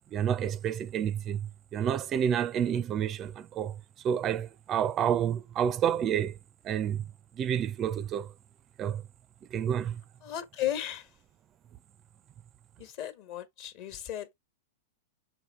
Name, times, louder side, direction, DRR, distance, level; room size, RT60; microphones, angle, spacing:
voice 1, 0.1-3.8 4.0-6.4 6.6-7.0 7.4-8.3 8.8-9.0 9.5-10.0, right 9 dB, 25° right, 0.5 m, -29 dB
voice 2, 10.2-11.1 12.8-14.3, left 11 dB, 45° left, 1.3 m, -35 dB
6.1 x 4.7 x 3.6 m
supercardioid pair, 150°, 0 cm